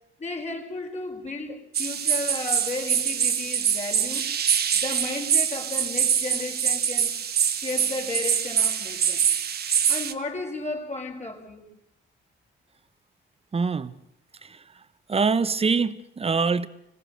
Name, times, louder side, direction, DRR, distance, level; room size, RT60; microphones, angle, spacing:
voice 1, 0.2-4.3 4.7-7.1 7.5-9.3 9.9-11.7, left 2 dB, 35° left, 5.0 m, -34 dB
sound 1, 1.7-10.1, right 8 dB, 55° right, 1.4 m, -24 dB
voice 2, 13.5-13.9 14.4-14.6 15.1-16.7, right 4 dB, 30° right, 1.1 m, -24 dB
26.0 x 17.5 x 6.7 m
cardioid pair, 90°, 20 cm